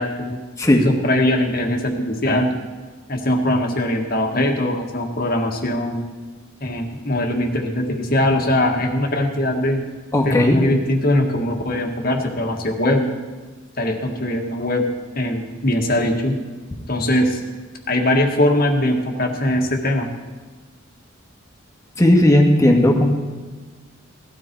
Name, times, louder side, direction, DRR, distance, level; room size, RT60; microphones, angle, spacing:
voice 1, 0.0-0.4 0.8-2.6 3.1-6.1 6.6-9.8 10.2-13.1 13.8-14.9 15.1-16.4 16.9-17.4 17.9-20.1, left 1 dB, 45° left, 2 dB, 1.7 m, -21 dB
voice 2, 10.1-10.6 22.0-23.1, left 1 dB, 15° left, 1 dB, 1.7 m, -15 dB
17.5 x 13.0 x 4.6 m, 1.3 s
head